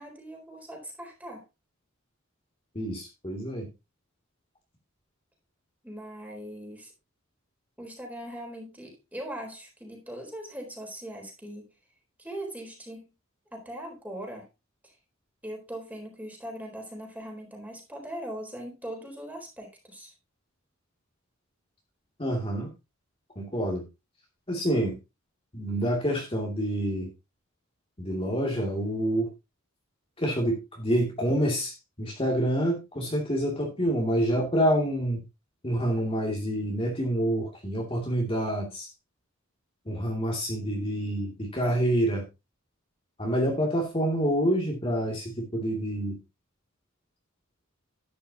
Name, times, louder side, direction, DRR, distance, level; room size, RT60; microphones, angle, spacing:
voice 1, 0.0-1.4 5.8-6.9 7.8-11.7 12.2-13.1 13.5-14.5 14.8-14.9 15.4-20.1, right 1 dB, 10° right, 1 dB, 4.0 m, -40 dB
voice 2, 2.7-3.7 22.2-22.7 23.4-23.8 24.5-25.0 25.5-27.1 28.0-29.3 30.2-35.2 35.6-38.9 39.9-42.2 43.2-46.2, equal, 25° left, -1 dB, 2.6 m, -27 dB
12.0 x 10.0 x 2.9 m, 0.26 s
head